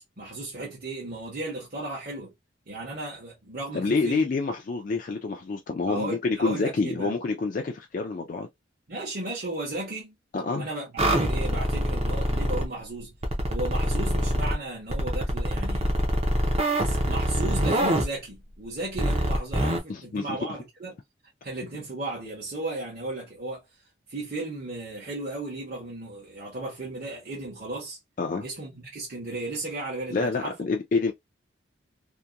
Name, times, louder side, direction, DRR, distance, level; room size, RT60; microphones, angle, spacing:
voice 1, 0.2-2.3 2.7-4.3 5.9-7.1 8.9-10.2 10.5-13.1 13.5-15.9 16.8-21.0 21.4-23.6 24.1-28.0 28.4-30.5, right 2 dB, 50° right, 1.0 m, -35 dB
voice 2, 3.7-8.5 10.3-10.7 19.9-20.4 28.2-28.5 30.1-31.1, left 4 dB, 45° left, 0.3 m, -27 dB
sound 1, 11.0-12.7 13.2-14.5 14.9-18.0 19.0-19.8, equal, 35° right, 0.6 m, -25 dB
2.8 x 2.1 x 2.3 m
head